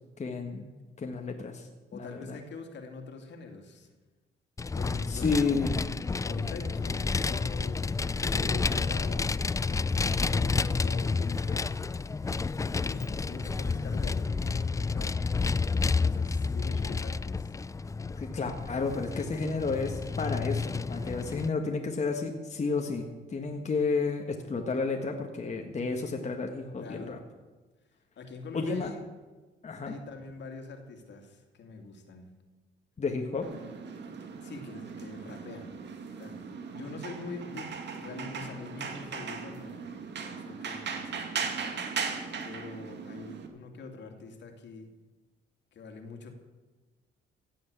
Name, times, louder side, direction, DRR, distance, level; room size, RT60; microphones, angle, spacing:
voice 1, 0.2-0.7 1.0-2.4 5.1-5.7 16.6-16.7 18.2-27.2 28.5-28.9 29.6-29.9 33.0-33.5, left 4 dB, 35° left, 3 dB, 1.6 m, -31 dB
voice 2, 1.9-3.9 4.7-5.6 6.2-11.7 12.6-15.2 16.0-17.5 26.8-27.2 28.2-29.0 29.8-32.3 34.4-35.8 36.2-36.4 36.7-41.6 42.4-44.9 45.7-46.3, left 4 dB, 65° left, 4 dB, 2.6 m, -44 dB
Vehicle, 4.6-21.5, left 4 dB, 15° left, 0.4 m, -30 dB
sound 1, 33.4-43.5, right 5 dB, 60° right, 2.2 m, -38 dB
16.0 x 8.4 x 8.2 m, 1.2 s
cardioid pair, 90°, 20 cm